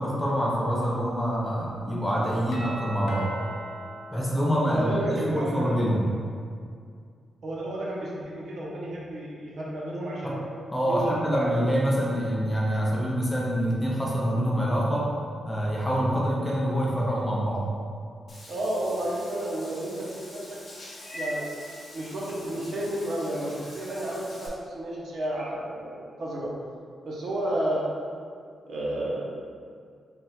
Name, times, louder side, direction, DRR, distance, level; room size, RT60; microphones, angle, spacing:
voice 1, 0.0-3.3 4.1-6.1 10.2-10.4 10.7-15.1 15.4-17.7, equal, 10° left, -5 dB, 0.5 m, -26 dB
Doorbell, 2.5-5.3, right 1 dB, 85° left, 0.7 m, -40 dB
voice 2, 4.7-5.9 7.4-10.4 10.9-11.5 18.5-20.6 21.1-21.4 21.9-26.5 27.0-27.9 28.6-29.2, right 1 dB, 60° right, -4 dB, 0.7 m, -31 dB
Meow / Water / Bathtub (filling or washing), 18.3-24.5, left 1 dB, 50° left, 1.1 m, -43 dB
3.6 x 2.2 x 4.1 m, 2.2 s
wide cardioid pair, 165°, 0 cm